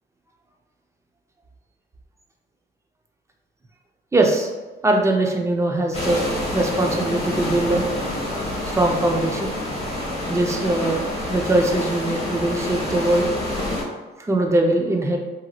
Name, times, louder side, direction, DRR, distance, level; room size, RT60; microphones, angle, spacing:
voice 1, 4.1-4.5 4.8-7.8 8.7-9.5 10.3-13.3 14.2-15.2, right 2 dB, 15° right, 2 dB, 0.5 m, -21 dB
sound 1, 5.9-13.8, left 1 dB, 30° left, 1.0 m, -27 dB
2.9 x 2.7 x 2.3 m, 1.2 s
cardioid pair, 90°, 20 cm